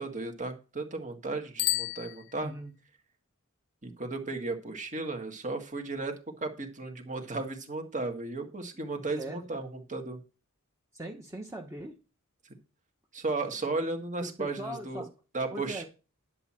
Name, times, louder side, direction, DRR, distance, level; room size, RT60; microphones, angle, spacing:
voice 1, 0.0-2.5 3.8-10.2 13.1-15.1 15.3-15.8, right 3 dB, 35° right, 5 dB, 1.8 m, -35 dB
Bicycle bell, 1.5-2.9, left 17 dB, 45° left, 0.4 m, -33 dB
voice 2, 2.4-2.7 9.2-9.4 10.9-11.9 14.2-15.1 15.5-15.8, right 1 dB, 15° right, 1 dB, 1.2 m, -40 dB
10.5 x 7.4 x 4.4 m, 0.32 s
head